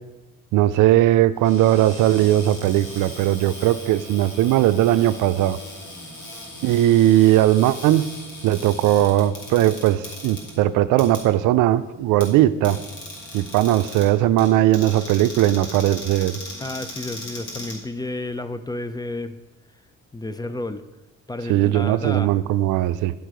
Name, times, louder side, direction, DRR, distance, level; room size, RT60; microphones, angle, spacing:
voice 1, 0.5-5.6 6.6-8.1 8.4-12.8 13.3-16.4 21.5-23.1, right 14 dB, 90° right, 13 dB, 0.4 m, -18 dB
Cupboard open or close, 1.3-18.4, left 1 dB, 70° left, 2.7 m, -39 dB
voice 2, 16.6-19.4 20.1-20.8 21.3-22.3, left 2 dB, 15° left, 12 dB, 0.5 m, -31 dB
10.5 x 4.6 x 5.0 m, 1.1 s
cardioid pair, 90°, 30 cm